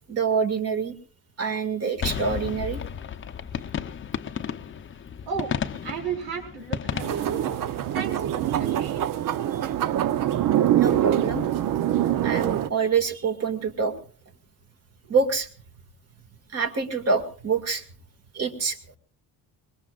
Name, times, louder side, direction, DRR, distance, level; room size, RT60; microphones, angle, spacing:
voice 1, 0.1-0.9 1.4-2.8 8.7-8.8 9.5-9.8 10.8-11.5 12.2-13.9 15.1-15.5 16.5-17.8 18.3-18.8, right 5 dB, 40° right, 6 dB, 2.0 m, -26 dB
sound 1, 2.0-8.3, left 8 dB, 30° left, 0.7 m, -33 dB
voice 2, 5.8-7.3 7.9-9.0, right 6 dB, 75° right, 1 dB, 4.7 m, -34 dB
sound 2, 7.0-12.7, right 11 dB, 55° right, 0.7 m, -24 dB
24.0 x 21.0 x 2.4 m, 0.41 s
cardioid pair, 160°, 38 cm